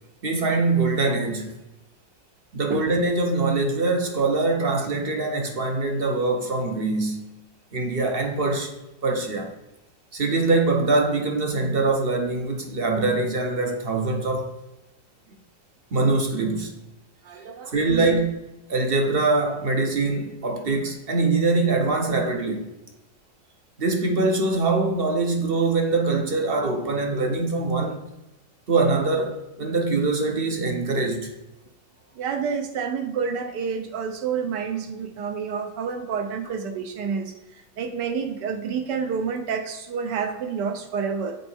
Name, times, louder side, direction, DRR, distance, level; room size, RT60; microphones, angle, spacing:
voice 1, 0.2-1.6 2.5-7.3 7.7-8.7 9.0-9.5 10.1-14.5 15.9-16.8 17.7-22.7 23.8-28.0 28.7-31.3, right 3 dB, 45° right, 0.8 m, -23 dB
voice 2, 17.2-18.2 32.2-37.3 37.8-41.4, right 6 dB, 70° right, 1.5 m, -29 dB
7.9 x 4.4 x 4.4 m
omnidirectional pair, 2.0 m